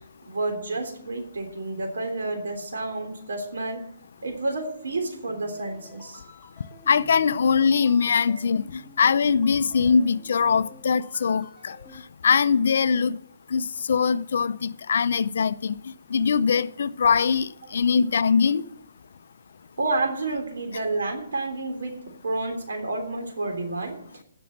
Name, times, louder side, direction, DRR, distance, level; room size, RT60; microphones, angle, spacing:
voice 1, 0.3-3.8 4.2-6.2 19.8-24.0, right 2 dB, 85° right, 3.3 m, -30 dB
sound 1, 5.1-12.0, left 3 dB, 5° left, 1.8 m, -49 dB
voice 2, 6.9-13.2 13.5-15.8 16.1-18.7, left 6 dB, 55° left, 0.5 m, -22 dB
16.5 x 6.1 x 7.2 m
hypercardioid pair, 170°, 0 cm